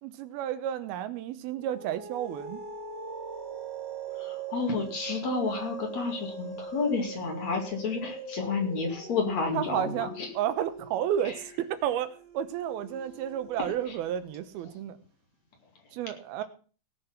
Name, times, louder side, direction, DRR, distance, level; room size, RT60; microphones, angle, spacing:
voice 1, 0.0-2.6 9.5-10.1 10.3-15.0 15.9-16.4, right 10 dB, 85° right, 11 dB, 2.9 m, -31 dB
sound 1, 1.6-14.4, right 4 dB, 40° right, 1.8 m, -42 dB
voice 2, 4.2-10.3 13.9-14.0, left 4 dB, 50° left, 3 dB, 3.5 m, -30 dB
18.0 x 6.9 x 5.8 m, 0.39 s
omnidirectional pair, 4.3 m